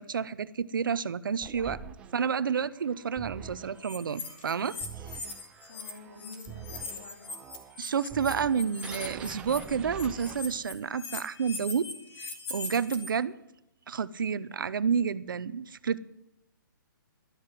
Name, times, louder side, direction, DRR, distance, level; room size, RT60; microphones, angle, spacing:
voice 1, 0.0-1.8 2.1-4.8 7.8-11.9 12.2-13.4 13.9-16.0, right 6 dB, 70° right, 16 dB, 0.8 m, -30 dB
sound 1, 1.4-10.8, right 7 dB, 10° right, 0.4 m, -45 dB
sound 2, 3.8-5.9 6.2-13.1, left 4 dB, 30° left, 2.4 m, -40 dB
voice 2, 5.7-7.4, left 3 dB, 55° left, -1 dB, 5.0 m, -48 dB
12.5 x 7.7 x 8.2 m, 0.86 s
hypercardioid pair, 165°, 11 cm